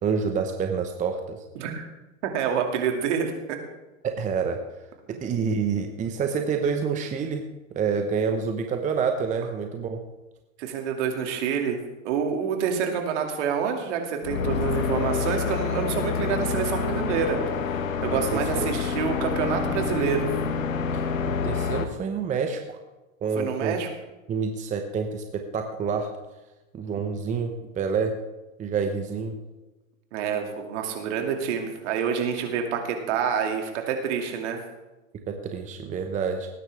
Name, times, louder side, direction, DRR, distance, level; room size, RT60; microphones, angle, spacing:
voice 1, 0.0-1.4 4.0-4.6 5.1-7.5 7.7-10.0 18.3-18.7 20.9-22.8 23.2-23.8 24.3-26.1 26.7-28.1 28.6-29.4 35.1-36.5, right 6 dB, 20° right, 5 dB, 1.0 m, -28 dB
voice 2, 2.2-3.6 10.6-11.8 12.0-17.4 18.0-20.3 23.3-23.9 30.1-34.6, right 7 dB, 60° right, 3 dB, 2.7 m, -27 dB
sound 1, 14.2-21.8, left 5 dB, 75° left, 1.4 m, -27 dB
19.0 x 9.9 x 3.6 m, 1.1 s
hypercardioid pair, 120°, 41 cm